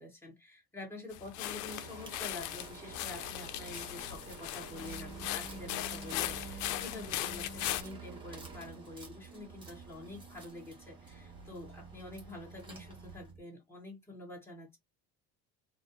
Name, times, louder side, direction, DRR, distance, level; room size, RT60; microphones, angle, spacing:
voice 1, 0.0-14.8, left 2 dB, 5° left, 1.3 m, -47 dB
sound 1, 1.1-7.8, left 14 dB, 70° left, 0.5 m, -39 dB
sound 2, 1.7-13.3, right 3 dB, 15° right, 1.0 m, -52 dB
sound 3, 2.9-13.4, right 4 dB, 35° right, 0.6 m, -50 dB
4.2 x 2.0 x 2.9 m
cardioid pair, 180°, 31 cm